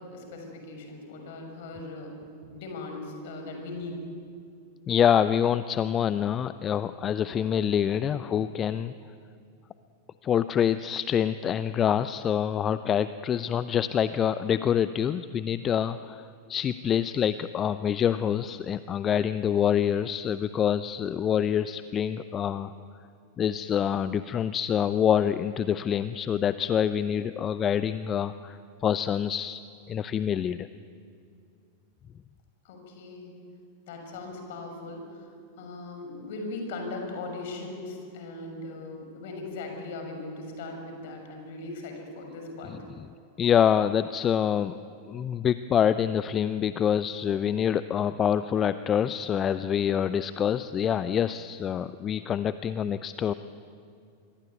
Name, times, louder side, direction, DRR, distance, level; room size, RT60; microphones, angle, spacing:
voice 1, 0.0-2.2 2.5-4.0 8.0-8.3 32.6-33.4 33.9-35.3 35.6-42.8, left 2 dB, 55° left, 4 dB, 6.6 m, -39 dB
voice 2, 4.9-8.9 10.2-22.7 23.4-29.6 29.9-30.7 42.6-43.1 43.4-44.8 45.1-53.3, left 9 dB, 25° left, 14 dB, 0.6 m, -26 dB
26.5 x 22.0 x 9.4 m, 2.4 s
figure-of-eight pair, 90°, 0 cm